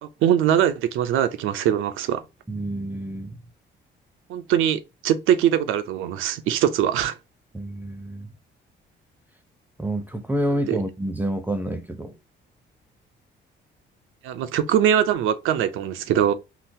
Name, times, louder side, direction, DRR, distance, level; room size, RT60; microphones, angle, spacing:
voice 1, 0.0-2.2 4.3-7.2 10.7-10.8 14.2-16.3, right 10 dB, 85° right, 0.5 m, -22 dB
voice 2, 2.5-3.4 7.5-8.3 9.8-12.1, right 1 dB, 10° right, 0.5 m, -28 dB
3.8 x 2.3 x 2.6 m
cardioid pair, 90°, 20 cm